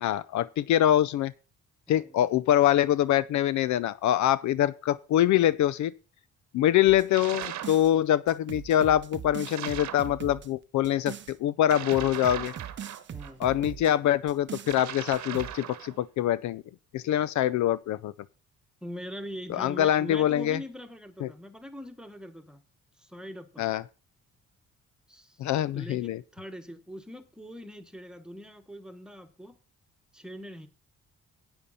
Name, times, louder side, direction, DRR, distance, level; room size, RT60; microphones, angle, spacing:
voice 1, 0.0-1.3 1.9-5.9 6.5-12.5 13.4-16.6 16.9-18.1 19.5-20.6 21.2-21.3 23.6-23.8 25.4-26.2, left 12 dB, 70° left, 0.5 m, -24 dB
voice 2, 1.9-2.2 13.1-13.5 18.8-22.6 23.0-23.7 25.1-25.5 25.7-29.6 30.1-30.7, equal, 5° right, 1.3 m, -42 dB
sound 1, 6.9-7.9 8.3-11.3 11.7-13.9 14.3-14.8 15.1-15.6, right 9 dB, 40° right, 0.6 m, -41 dB
sound 2, 7.1-7.8 9.4-10.1 11.6-13.3 14.6-16.0, right 10 dB, 70° right, 1.0 m, -38 dB
10.5 x 8.7 x 4.2 m
cardioid pair, 90°, 30 cm